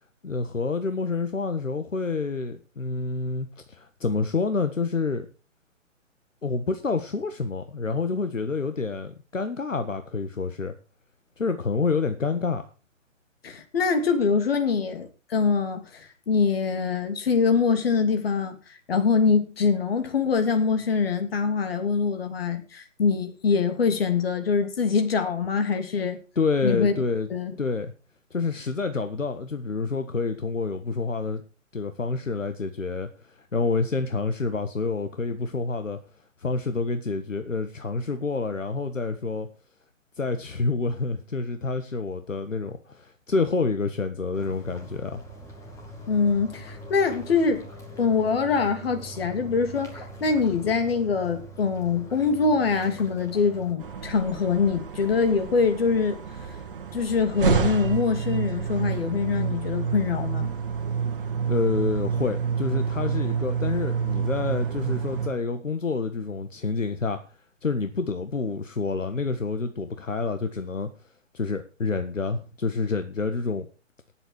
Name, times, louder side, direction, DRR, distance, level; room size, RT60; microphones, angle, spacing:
voice 1, 0.2-5.3 6.4-10.7 11.4-12.7 26.3-27.3 27.6-27.9 28.3-31.4 31.7-36.0 36.4-39.5 40.2-45.2 61.5-67.2 67.6-70.9 71.3-73.6, left 4 dB, 75° left, 1.6 m, -28 dB
voice 2, 13.4-18.6 18.9-26.2 26.6-26.9 27.3-27.5 46.1-47.7 48.0-56.2 56.9-60.5, left 5 dB, 50° left, 2.9 m, -24 dB
sound 1, 44.3-53.7, right 1 dB, 10° left, 2.3 m, -42 dB
sound 2, 53.8-65.3, right 6 dB, 45° right, 1.9 m, -28 dB
18.0 x 8.0 x 4.7 m
figure-of-eight pair, 135°, 39 cm